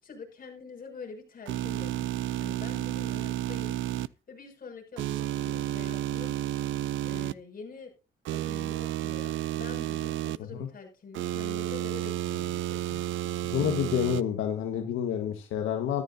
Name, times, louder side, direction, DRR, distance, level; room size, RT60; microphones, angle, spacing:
voice 1, 0.0-2.1 2.4-3.8 4.3-6.4 7.0-7.9 8.3-13.0, left 5 dB, 45° left, 1 dB, 6.4 m, -45 dB
sound 1, 1.5-4.1 5.0-7.3 8.2-10.4 11.1-14.2, right 14 dB, 75° right, 0.5 m, -31 dB
voice 2, 13.4-16.0, left 9 dB, 85° left, 4 dB, 1.6 m, -29 dB
14.0 x 13.5 x 2.7 m, 0.30 s
cardioid pair, 90°, 20 cm